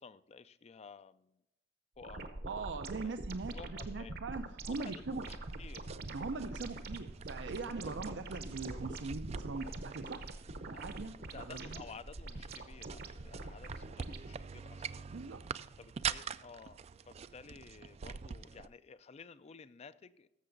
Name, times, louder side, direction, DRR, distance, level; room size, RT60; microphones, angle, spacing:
voice 1, 0.0-1.3 2.0-3.1 3.5-4.2 4.7-5.8 10.7-10.8 11.2-15.1 15.8-20.3, left 5 dB, 35° left, 15 dB, 0.4 m, -53 dB
sound 1, 2.0-14.4, right 2 dB, 60° right, 0.9 m, -44 dB
voice 2, 2.5-5.2 6.1-10.3 10.6-11.8 15.1-15.4, right 3 dB, 80° right, 6 dB, 0.6 m, -41 dB
sound 2, 4.7-18.7, right 7 dB, 35° right, 0.3 m, -46 dB
14.0 x 6.7 x 3.9 m, 0.89 s
head